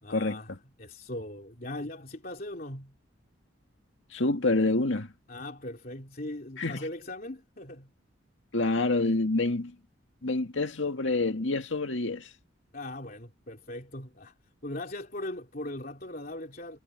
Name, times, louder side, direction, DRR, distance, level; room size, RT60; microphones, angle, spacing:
voice 1, 0.0-2.9 5.3-7.9 12.7-14.3 14.6-16.8, left 1 dB, 45° left, 3.1 m, -39 dB
voice 2, 4.1-5.1 6.6-6.8 8.5-9.7 10.2-12.2, left 2 dB, 80° left, 2.0 m, -27 dB
head